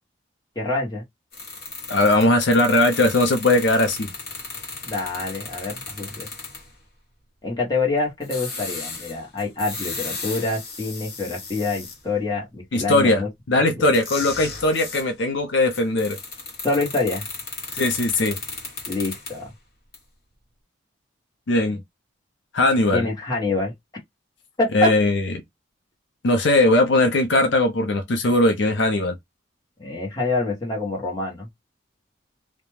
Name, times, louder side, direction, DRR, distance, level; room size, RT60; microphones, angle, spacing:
voice 1, 0.5-1.0 4.9-6.3 7.4-13.3 13.7-13.9 16.6-17.3 18.9-19.5 22.9-23.7 24.6-24.9 29.8-31.5, left 2 dB, 20° left, 1.1 m, -26 dB
sound 1, 1.3-6.7 8.2-12.0 13.9-15.1 15.7-19.5 19.9-20.0, left 4 dB, 50° left, 1.2 m, -35 dB
voice 2, 1.9-4.1 12.7-13.2 13.5-16.2 17.7-18.4 21.5-21.8 22.5-23.1 24.7-25.2 26.2-29.1, left 2 dB, 70° left, 0.6 m, -19 dB
2.5 x 2.2 x 3.1 m
head